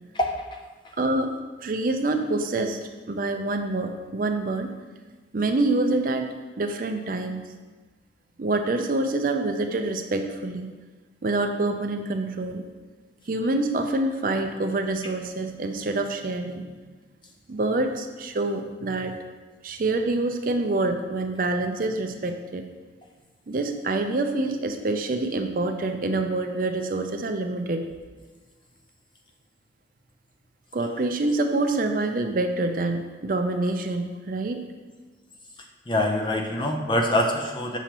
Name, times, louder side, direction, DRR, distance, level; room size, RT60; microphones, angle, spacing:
voice 1, 1.0-1.3 1.6-2.8 3.1-4.7 5.3-7.5 8.4-10.7 11.2-12.6 13.3-16.7 17.5-19.2 19.6-22.6 23.5-27.8 30.7-34.6, right 2 dB, 50° right, 6 dB, 0.5 m, -26 dB
voice 2, 35.9-37.8, left 1 dB, 25° left, 2 dB, 0.6 m, -24 dB
6.9 x 5.9 x 2.9 m, 1.3 s
head